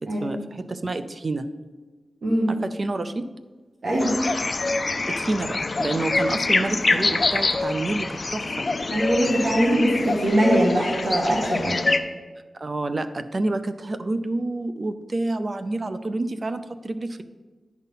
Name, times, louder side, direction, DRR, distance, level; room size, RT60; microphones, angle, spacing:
voice 1, 0.0-1.5 2.5-3.3 5.1-8.7 12.5-17.2, right 2 dB, 45° right, 11 dB, 0.5 m, -28 dB
voice 2, 2.2-2.6 3.8-4.1 8.9-11.8, right 1 dB, 65° right, -4 dB, 1.7 m, -22 dB
sound 1, 4.0-12.0, left 3 dB, 45° left, 0.5 m, -25 dB
10.0 x 4.1 x 5.6 m, 1.3 s
wide cardioid pair, 75°, 0 cm